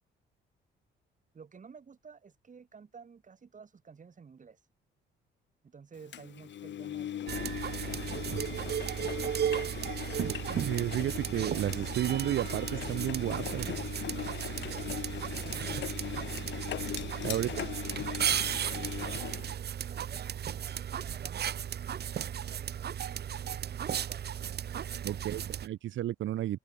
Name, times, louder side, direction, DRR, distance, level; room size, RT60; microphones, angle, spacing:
voice 1, 1.3-4.6 5.6-7.5 9.1-9.2 14.5-16.0 17.4-17.9 18.5-19.4 19.8-20.3 20.6-21.5 22.3-22.9 23.2-24.2, right 5 dB, 40° right, 6.1 m, -53 dB
Engine, 6.1-19.5, left 11 dB, 65° left, 1.7 m, -39 dB
sound 1, 7.3-25.7, right 9 dB, 55° right, 1.5 m, -35 dB
voice 2, 10.5-13.8 17.2-17.5 25.0-26.6, right 13 dB, 75° right, 1.5 m, -32 dB
cardioid pair, 90°, 20 cm